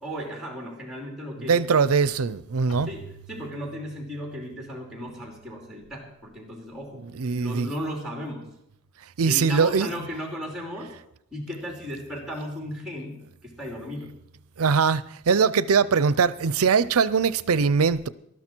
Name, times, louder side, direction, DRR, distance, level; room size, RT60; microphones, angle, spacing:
voice 1, 0.0-2.0 2.8-7.0 7.4-8.5 9.2-10.9 11.3-14.2, equal, ahead, 2.9 m, -36 dB
voice 2, 1.5-2.9 7.2-7.7 9.2-9.9 14.6-18.1, right 5 dB, 75° right, 0.6 m, -21 dB
Keyboard (musical), 2.7-7.2, right 3 dB, 75° left, 1.9 m, -49 dB
19.0 x 13.0 x 4.5 m
head